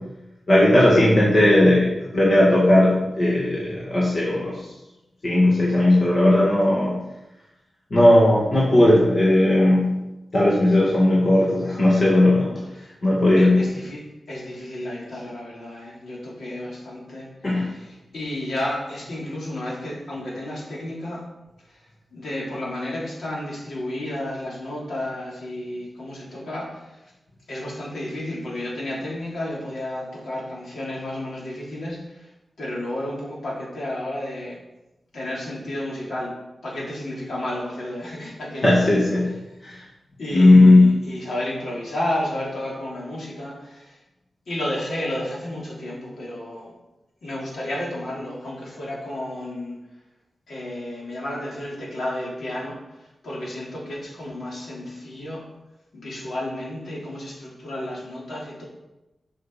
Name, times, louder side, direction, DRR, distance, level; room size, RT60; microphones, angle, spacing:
voice 1, 0.5-4.6 5.2-7.0 7.9-9.9 10.3-12.5 13.0-13.6 17.4-17.7 38.6-39.2 39.6-39.8 40.3-40.9, left 1 dB, 45° left, -6 dB, 1.9 m, -16 dB
voice 2, 13.3-14.0 14.3-21.2 21.7-21.8 22.1-27.0 27.5-32.3 32.6-34.6 35.1-36.3 36.6-39.1 40.2-44.0 44.5-46.7 47.2-49.8 50.5-55.4 55.9-58.6, left 1 dB, 70° left, -5 dB, 3.4 m, -32 dB
7.8 x 6.4 x 5.6 m, 0.96 s
wide cardioid pair, 170°, 0 cm